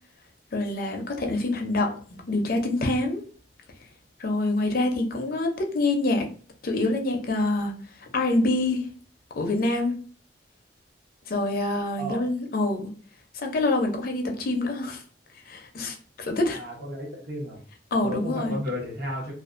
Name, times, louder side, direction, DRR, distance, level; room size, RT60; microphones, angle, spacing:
voice 1, 0.5-2.0 2.3-3.2 4.2-6.3 6.6-7.7 8.1-8.9 9.3-10.0 11.3-12.9 13.3-15.0 15.5-16.6 17.9-18.6, left 2 dB, 50° left, 3 dB, 0.5 m, -26 dB
voice 2, 16.5-17.6 18.0-19.3, equal, 55° right, -3 dB, 1.1 m, -33 dB
2.5 x 2.3 x 2.4 m, 0.42 s
head